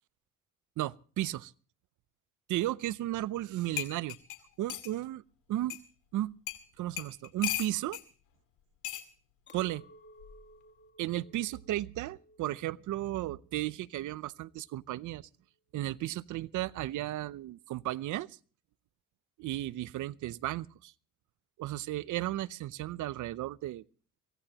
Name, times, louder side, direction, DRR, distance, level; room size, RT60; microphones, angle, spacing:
voice 1, 0.8-1.5 2.5-4.2 4.6-5.2 5.5-5.8 6.1-6.3 6.8-8.0 9.5-9.8 11.0-15.3 15.7-18.4 19.4-20.9 21.6-23.8, right 15 dB, 75° right, 0.7 m, -34 dB
sound 1, 3.4-3.5 3.8-4.9 5.7-5.8 6.5-6.6 7.0-8.0 8.8-9.1 10.2-10.5, left 13 dB, 90° left, 2.3 m, -37 dB
Chink clink, 9.5-14.8, left 1 dB, 35° left, 2.7 m, -59 dB
24.0 x 16.5 x 2.9 m
cardioid pair, 90°, 30 cm